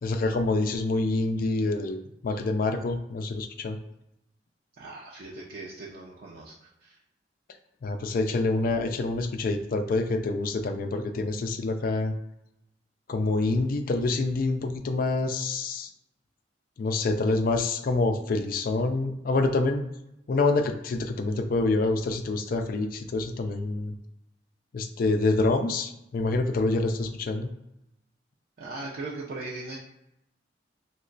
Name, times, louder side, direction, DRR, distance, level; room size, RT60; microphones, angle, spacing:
voice 1, 0.0-3.8 7.8-12.1 13.1-15.9 16.8-19.8 20.3-23.9 24.7-27.5, left 3 dB, 50° left, 6 dB, 0.4 m, -26 dB
voice 2, 4.8-7.0 28.6-29.8, right 2 dB, 55° right, -4 dB, 0.5 m, -39 dB
3.0 x 2.2 x 3.8 m, 0.84 s
head